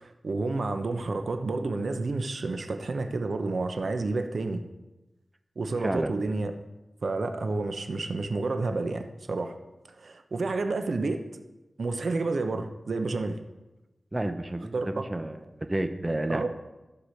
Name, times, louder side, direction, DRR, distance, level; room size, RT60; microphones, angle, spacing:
voice 1, 0.0-4.6 5.6-6.5 7.0-9.5 10.0-11.2 11.8-13.4 14.7-15.1 16.3-16.5, right 3 dB, 70° right, 7 dB, 0.9 m, -30 dB
voice 2, 5.8-6.1 14.1-16.5, right 1 dB, 25° right, 7 dB, 0.8 m, -30 dB
14.5 x 5.0 x 6.4 m, 1.0 s
wide cardioid pair, 75°, 0 cm